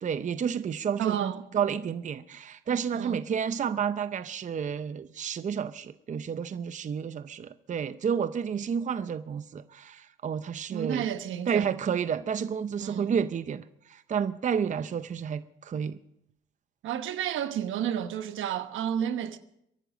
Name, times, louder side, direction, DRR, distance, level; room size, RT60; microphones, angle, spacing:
voice 1, 0.0-11.1 11.5-16.0, right 7 dB, 40° right, 0.6 m, -30 dB
voice 2, 1.0-1.4 2.9-3.2 10.7-11.7 12.8-13.1 16.8-19.4, right 10 dB, 80° right, 1.2 m, -31 dB
23.0 x 11.5 x 5.1 m
cardioid pair, 90°, 20 cm